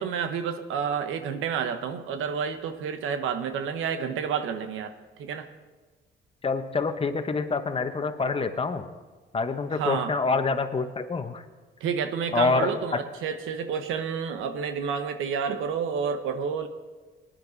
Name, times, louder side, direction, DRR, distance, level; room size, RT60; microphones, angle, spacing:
voice 1, 0.0-5.5 9.8-10.1 11.8-16.7, right 6 dB, 85° right, 9 dB, 1.1 m, -30 dB
voice 2, 6.4-8.9 9.3-11.4 12.3-13.0, left 4 dB, 30° left, 8 dB, 1.1 m, -26 dB
19.0 x 10.5 x 4.1 m, 1.3 s
cardioid pair, 90°, 20 cm